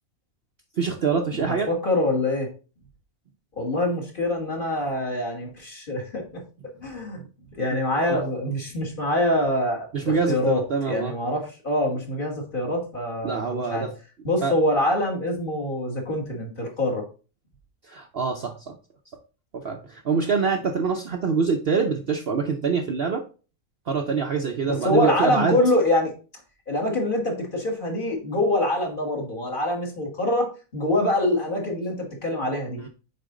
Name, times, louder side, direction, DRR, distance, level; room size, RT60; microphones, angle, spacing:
voice 1, 0.8-1.7 8.0-8.2 9.9-11.1 13.2-13.9 14.4-14.5 17.9-18.8 19.5-23.2 23.9-25.6, right 5 dB, 55° right, 3 dB, 0.8 m, -25 dB
voice 2, 1.3-2.5 3.6-6.4 6.8-7.2 7.6-13.9 14.2-17.0 24.6-26.1 26.7-32.9, left 1 dB, 35° left, 0 dB, 1.8 m, -25 dB
6.7 x 4.4 x 3.7 m, 0.35 s
omnidirectional pair, 1.5 m